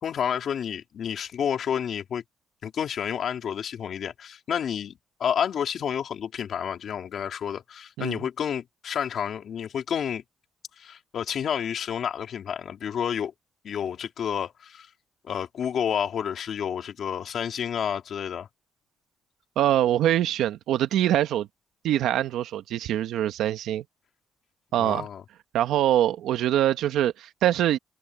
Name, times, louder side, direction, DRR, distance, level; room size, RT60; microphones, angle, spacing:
voice 1, 0.0-2.2 2.6-10.2 10.8-13.3 13.6-14.9 15.2-18.5 24.8-25.2, left 8 dB, 60° left, 3.0 m, -30 dB
voice 2, 19.5-21.5 21.8-23.8 24.7-25.1 25.5-27.8, right 12 dB, 85° right, 1.4 m, -24 dB
cardioid pair, 90°, 0 cm